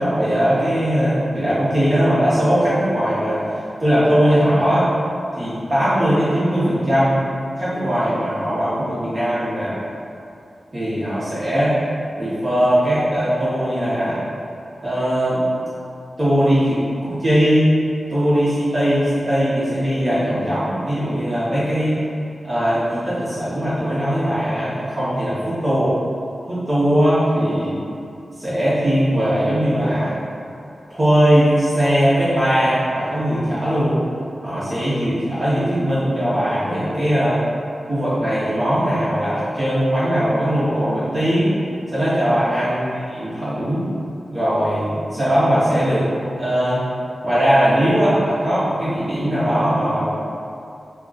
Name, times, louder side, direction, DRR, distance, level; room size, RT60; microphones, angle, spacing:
voice 1, 0.0-3.4 3.8-4.9 5.4-7.2 7.6-9.8 10.7-11.8 12.2-14.2 14.8-15.5 16.2-17.7 18.1-22.0 22.4-25.9 26.5-27.8 28.4-30.2 30.9-34.0 34.4-37.4 37.9-41.6 41.9-42.8 43.1-43.9 44.3-46.1 46.4-46.8 47.2-50.1, equal, 45° right, -12 dB, 0.7 m, -19 dB
2.3 x 2.2 x 3.7 m, 2.5 s
cardioid pair, 55°, 0 cm